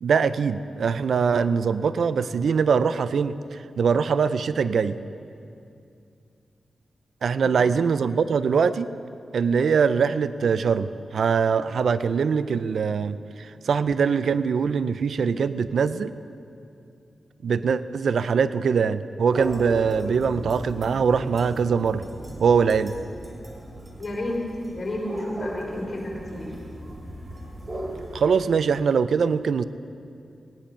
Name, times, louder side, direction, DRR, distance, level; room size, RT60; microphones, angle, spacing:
voice 1, 0.0-5.0 7.2-8.9 9.3-16.1 17.4-22.0 22.4-22.9 28.1-29.6, right 6 dB, 80° right, 14 dB, 0.4 m, -22 dB
sound 1, 19.3-28.2, right 1 dB, 40° right, 2.7 m, -36 dB
voice 2, 24.0-24.4 24.7-26.5, left 1 dB, 45° left, -2 dB, 4.3 m, -32 dB
18.0 x 10.5 x 5.6 m, 2.5 s
cardioid pair, 65°, 0 cm